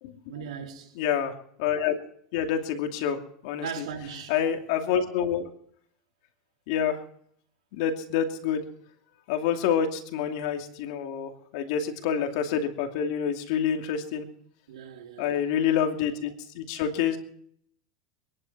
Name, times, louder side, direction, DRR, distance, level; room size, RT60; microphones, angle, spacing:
voice 1, 0.3-1.0 3.6-4.4 14.7-15.5, right 7 dB, 85° right, 3.0 m, -38 dB
voice 2, 1.0-2.0 2.3-3.9 4.3-5.5 6.7-7.0 7.7-8.7 9.3-14.3 15.2-17.2, left 8 dB, 65° left, 2.5 m, -27 dB
23.0 x 11.0 x 4.7 m
supercardioid pair, 130°, 3 cm